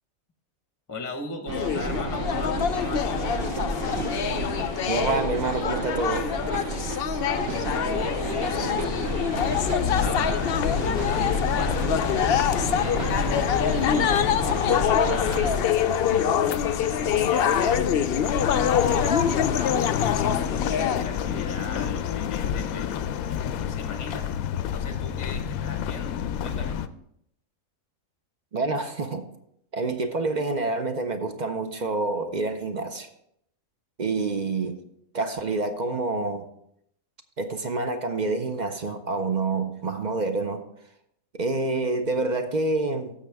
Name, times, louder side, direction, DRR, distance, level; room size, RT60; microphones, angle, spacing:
voice 1, 0.9-3.4 7.4-9.3 9.8-10.5 10.8-11.9 12.4-15.6 16.1-20.0 20.5-23.0 23.6-24.3 24.7-26.8, left 2 dB, 15° left, 6 dB, 0.8 m, -39 dB
sound 1, 1.5-21.0, left 8 dB, 60° left, 0.6 m, -25 dB
sound 2, 1.5-15.7, right 1 dB, 70° right, 1.7 m, -31 dB
voice 2, 4.9-6.3 28.5-29.3 29.7-33.1 34.0-34.8 35.1-36.5 37.4-40.6 41.4-43.1, right 3 dB, 45° right, 7 dB, 0.6 m, -27 dB
sound 3, 9.3-26.9, left 8 dB, 85° left, 1.0 m, -30 dB
15.5 x 6.4 x 3.4 m, 0.74 s
omnidirectional pair, 1.5 m